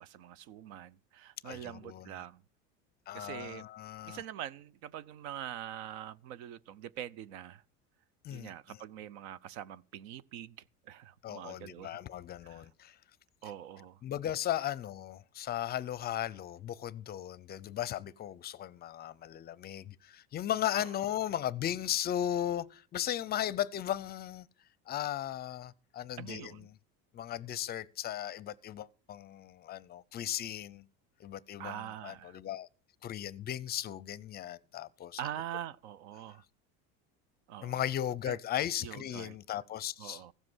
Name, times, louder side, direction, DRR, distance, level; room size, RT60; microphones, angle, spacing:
voice 1, 0.0-2.4 3.1-3.7 4.1-7.6 8.3-12.0 12.4-12.6 13.4-14.0 20.8-20.9 26.2-26.7 31.6-32.4 35.2-36.4 37.5-37.9 38.2-38.4 38.8-39.4 40.0-40.3, right 11 dB, 80° right, 0.8 m, -44 dB
voice 2, 1.4-2.1 3.1-4.2 8.2-8.8 11.2-13.0 14.0-24.5 24.9-26.6 27.1-30.8 31.2-32.7 33.0-35.2 37.6-40.2, left 11 dB, 30° left, 0.5 m, -36 dB
15.5 x 7.6 x 6.2 m
cardioid pair, 145°, 33 cm